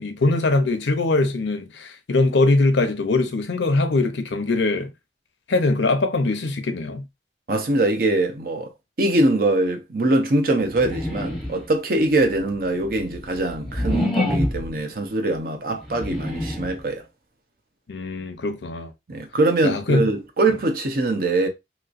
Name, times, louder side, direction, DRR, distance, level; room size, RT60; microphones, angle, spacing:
voice 1, 0.0-4.9 5.5-7.1 17.9-18.9 19.6-20.1, left 2 dB, 85° left, 0.6 m, -22 dB
voice 2, 7.5-8.7 9.0-17.0 19.1-21.5, right 2 dB, 55° right, 0.7 m, -22 dB
sound 1, 10.7-11.8 12.4-14.8 15.7-16.8, left 1 dB, ahead, 0.8 m, -26 dB
3.0 x 3.0 x 2.5 m
head